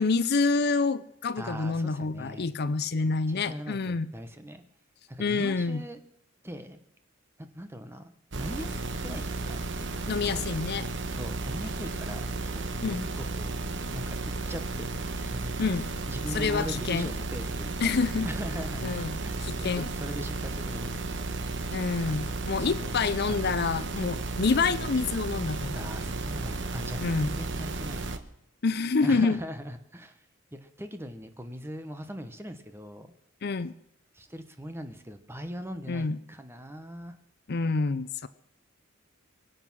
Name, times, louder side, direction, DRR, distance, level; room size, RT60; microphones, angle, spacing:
voice 1, 0.0-4.1 5.2-5.8 10.1-10.9 12.8-13.1 15.6-15.8 16.3-17.1 17.8-18.3 18.8-19.2 19.4-19.9 21.7-25.9 27.0-27.3 28.6-29.4 33.4-33.7 35.9-36.2 37.5-38.3, left 4 dB, 50° left, 15 dB, 0.6 m, -27 dB
voice 2, 1.4-2.5 3.3-4.6 5.1-6.0 6.4-6.8 7.5-9.6 9.9-10.5 11.1-13.5 13.9-14.9 15.2-18.0 18.2-18.9 19.2-21.4 22.1-22.2 22.8-23.0 23.3-23.5 25.7-28.2 29.0-30.2 30.5-33.1 34.1-37.1, equal, 10° right, 8 dB, 1.2 m, -40 dB
sound 1, 8.3-28.2, right 2 dB, 65° right, 1.2 m, -34 dB
24.0 x 8.1 x 6.2 m, 0.78 s
head